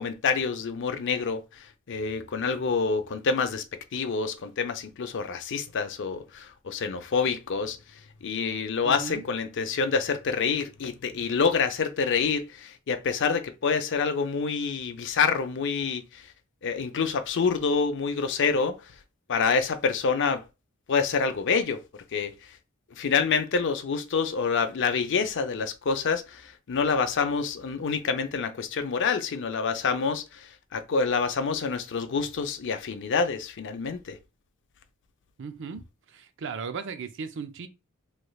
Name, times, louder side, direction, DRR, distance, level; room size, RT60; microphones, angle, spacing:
voice 1, 0.0-3.6 3.9-7.8 8.2-16.3 16.6-18.8 19.3-20.4 20.9-22.3 23.0-34.2, left 5 dB, 55° left, 0.5 m, -27 dB
voice 2, 8.8-9.3 35.4-37.7, right 5 dB, 55° right, 0.5 m, -37 dB
3.2 x 3.1 x 2.3 m
head